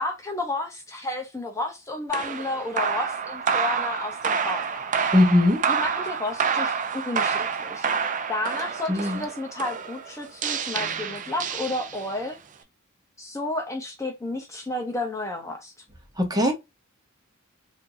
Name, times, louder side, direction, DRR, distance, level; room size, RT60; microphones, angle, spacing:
voice 1, 0.0-5.0 5.7-12.4 13.2-15.7, left 2 dB, 15° left, 0.7 m, -32 dB
sound 1, 2.1-12.3, right 6 dB, 35° right, 0.5 m, -28 dB
voice 2, 5.1-5.6 8.9-9.2 16.2-16.5, left 1 dB, 20° right, 1.0 m, -19 dB
4.4 x 2.6 x 2.6 m
head